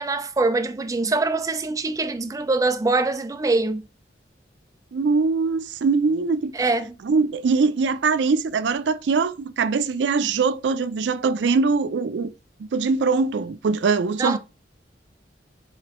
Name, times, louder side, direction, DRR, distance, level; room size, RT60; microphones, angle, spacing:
voice 1, 0.0-3.9 6.5-6.9 14.2-14.4, right 3 dB, 20° right, 0.4 m, -23 dB
voice 2, 4.9-6.5 7.0-12.3 12.6-14.4, right 4 dB, 85° right, 0.4 m, -22 dB
4.9 x 2.9 x 2.9 m
head